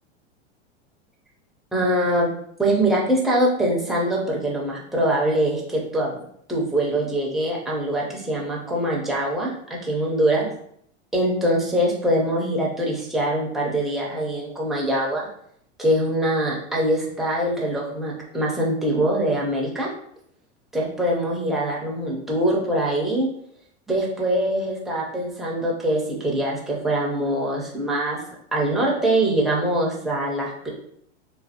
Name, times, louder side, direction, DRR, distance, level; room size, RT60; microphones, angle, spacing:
voice 1, 1.7-2.3 2.6-6.2 6.5-10.5 11.1-15.3 15.8-19.9 20.7-23.3 23.9-28.2 28.5-30.7, right 1 dB, ahead, -4 dB, 0.4 m, -23 dB
3.2 x 2.2 x 2.8 m, 0.68 s
supercardioid pair, 135°, 35 cm